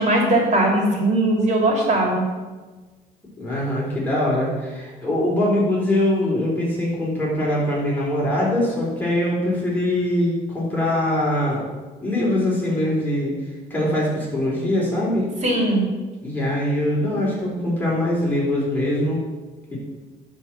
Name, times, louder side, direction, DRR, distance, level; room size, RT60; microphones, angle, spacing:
voice 1, 0.0-2.2 15.4-15.8, right 1 dB, 45° right, 0 dB, 3.3 m, -19 dB
voice 2, 3.4-11.6 12.0-13.3 13.7-15.3 16.2-19.2 19.7-19.8, left 1 dB, 10° left, -6 dB, 3.8 m, -22 dB
11.0 x 4.5 x 7.5 m, 1.3 s
cardioid pair, 110°, 17 cm